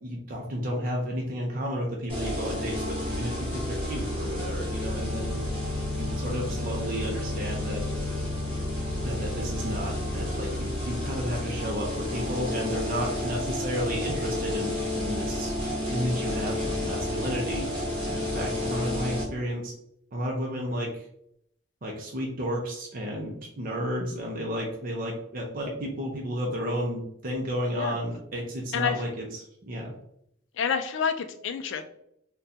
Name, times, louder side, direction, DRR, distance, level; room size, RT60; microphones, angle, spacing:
voice 1, 0.0-5.4 6.0-7.8 9.0-15.5 15.9-17.7 18.1-19.7 20.1-21.0 21.8-29.2 29.6-29.9, equal, 40° right, -1 dB, 0.5 m, -32 dB
sound 1, 2.1-19.2, left 1 dB, 25° right, 0.9 m, -31 dB
voice 2, 28.7-29.0 30.5-31.8, left 7 dB, 60° left, 8 dB, 0.3 m, -28 dB
3.6 x 2.2 x 2.7 m, 0.74 s
head